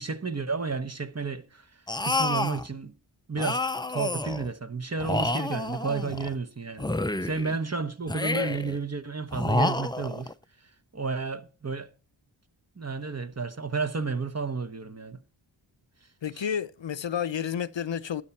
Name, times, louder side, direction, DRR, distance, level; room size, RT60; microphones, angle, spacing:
voice 1, 0.0-1.6 2.0-2.9 3.3-3.6 3.9-6.9 7.2-10.3 10.9-11.9 12.8-15.2 16.3-16.4, right 4 dB, 35° right, 1.1 m, -31 dB
sound 1, 1.9-2.7 3.4-4.5 5.0-6.3 6.8-7.6 8.1-8.8 9.3-10.3, left 2 dB, 10° left, 0.5 m, -29 dB
voice 2, 16.2-18.2, left 8 dB, 65° left, 0.7 m, -30 dB
13.0 x 10.0 x 4.4 m
wide cardioid pair, 65°, 47 cm